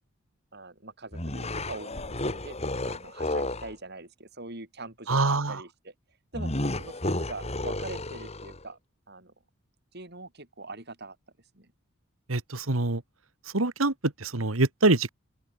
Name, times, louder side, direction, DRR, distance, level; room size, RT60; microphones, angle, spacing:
voice 1, 0.5-2.6 2.8-5.9 6.3-6.5 6.8-8.8 9.1-9.3 9.9-11.2 11.5-11.7, right 2 dB, 55° right, 6.5 m, -42 dB
sound 1, 1.1-3.7 6.3-8.6, left 1 dB, 30° left, 3.4 m, -32 dB
voice 2, 5.1-5.6 12.3-13.0 13.5-15.1, right 2 dB, 85° right, 1.9 m, -25 dB
open air
head